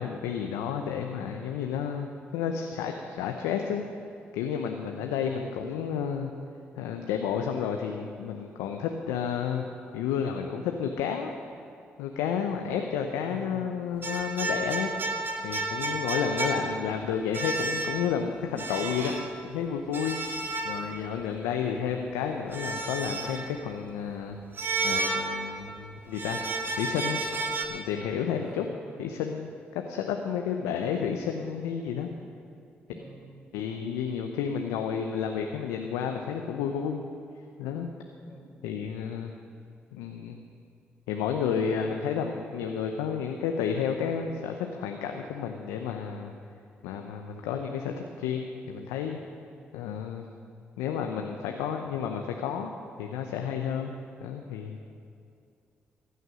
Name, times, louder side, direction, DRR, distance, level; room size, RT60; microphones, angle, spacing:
voice 1, 0.0-3.8 4.3-6.3 6.8-9.7 9.9-11.3 12.0-14.9 15.4-19.1 19.4-20.2 20.6-24.4 24.8-26.4 26.8-27.2 27.7-28.7 29.0-29.5 29.9-32.1 33.5-37.0 37.6-37.9 38.6-39.3 39.9-40.4 41.1-46.3 46.8-49.2 49.7-50.3 50.8-52.7 53.0-54.8, left 7 dB, 85° left, 4 dB, 0.7 m, -31 dB
voice 2, 13.2-13.7 15.7-16.1 28.4-28.8 32.9-33.5 38.3-38.6 49.2-49.5, right 1 dB, 10° right, 0 dB, 4.3 m, -48 dB
sound 1, 14.0-17.0 17.3-18.2 18.6-19.3 19.9-21.2 22.5-23.5 24.6-25.7 26.1-27.6, right 3 dB, 45° right, 2.1 m, -31 dB
15.0 x 9.4 x 6.2 m, 2.5 s
hypercardioid pair, 45°, 5 cm